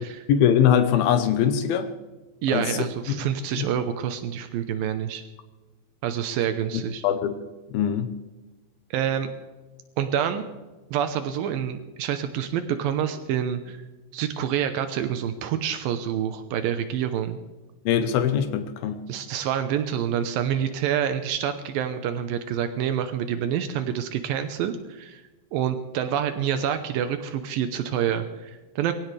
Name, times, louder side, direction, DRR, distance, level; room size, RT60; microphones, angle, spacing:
voice 1, 0.0-1.9 2.5-2.7 3.6-3.7 7.0-7.4 7.7-8.1 17.9-19.0, left 9 dB, 75° left, 8 dB, 2.2 m, -22 dB
voice 2, 2.4-5.2 6.0-7.0 8.9-9.3 10.0-10.5 10.9-13.8 14.1-17.4 19.1-25.2 25.5-28.9, right 9 dB, 90° right, 8 dB, 2.0 m, -27 dB
22.5 x 17.0 x 3.4 m, 1.2 s
omnidirectional pair, 5.4 m